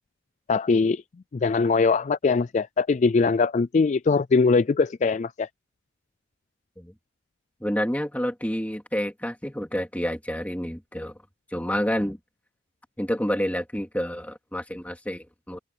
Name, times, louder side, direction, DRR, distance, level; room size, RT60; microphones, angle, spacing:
voice 1, 0.5-1.0 1.3-5.5, left 4 dB, 35° left, 0.3 m, -21 dB
voice 2, 7.6-11.1 11.5-12.2 13.0-15.6, equal, 5° left, 3.2 m, -29 dB
head